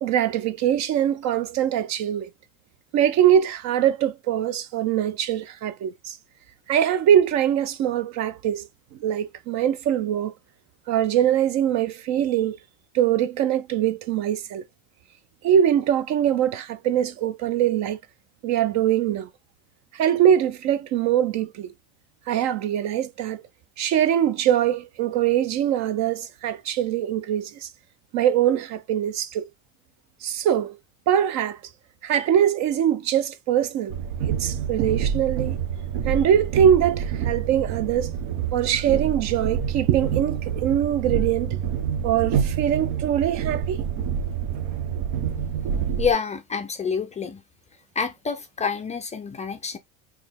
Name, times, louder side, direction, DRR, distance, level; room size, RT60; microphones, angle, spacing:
voice 1, 0.0-2.3 2.9-6.2 6.7-8.7 9.0-10.3 10.9-12.6 12.9-14.6 15.4-18.0 18.4-19.3 19.9-21.7 22.3-23.4 23.8-27.7 28.1-29.5 30.2-30.8 31.1-31.6 32.0-34.0 34.3-35.6 36.1-38.1 38.5-41.6 42.0-43.8, right 10 dB, 45° right, 0.5 m, -22 dB
Train, 33.9-46.1, right 8 dB, 70° right, 1.0 m, -27 dB
voice 2, 46.0-47.4 48.0-49.8, left 6 dB, 20° left, 0.4 m, -27 dB
3.8 x 3.1 x 3.4 m
supercardioid pair, 110°, 40 cm